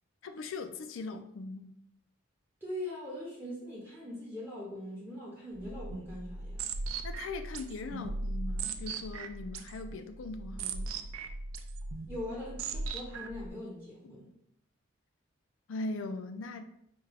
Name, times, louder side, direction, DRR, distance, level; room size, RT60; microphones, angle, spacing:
voice 1, 0.2-1.8 7.0-11.0 14.0-14.1 15.7-16.6, left 3 dB, 65° left, 0.4 m, -40 dB
voice 2, 2.6-6.6 12.1-14.3, left 1 dB, 10° right, 0.7 m, -41 dB
sound 1, 5.6-13.5, right 3 dB, 75° right, 0.4 m, -38 dB
4.8 x 2.2 x 3.3 m
head